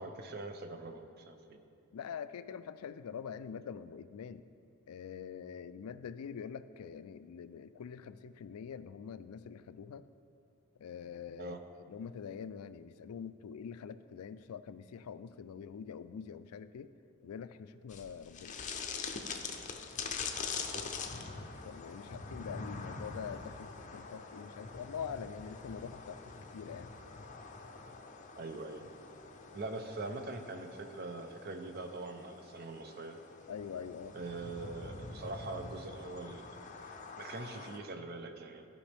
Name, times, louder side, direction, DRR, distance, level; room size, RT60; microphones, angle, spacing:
voice 1, 0.0-1.6 11.4-11.6 20.7-20.8 28.4-28.8 29.5-33.2 34.1-38.6, right 2 dB, 45° right, 6 dB, 0.6 m, -43 dB
voice 2, 1.9-4.4 4.9-10.0 10.8-11.6 11.9-16.9 17.2-18.6 21.6-26.9 33.5-34.2, left 7 dB, 85° left, 13 dB, 0.3 m, -44 dB
sound 1, 17.9-37.8, left 5 dB, 35° left, 0.5 m, -45 dB
14.5 x 5.3 x 3.4 m, 2.4 s
head